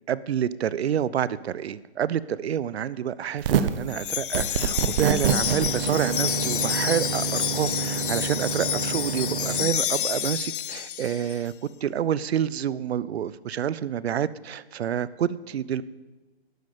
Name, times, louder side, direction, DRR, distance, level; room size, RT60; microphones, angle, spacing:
voice 1, 0.1-15.8, right 9 dB, 75° right, 18 dB, 0.7 m, -28 dB
sound 1, 3.4-3.9 4.3-9.6, right 7 dB, 55° right, 1.1 m, -27 dB
Wind chime, 3.9-11.4, left 11 dB, 55° left, 0.4 m, -29 dB
12.0 x 8.6 x 8.3 m, 1.2 s
hypercardioid pair, 150°, 32 cm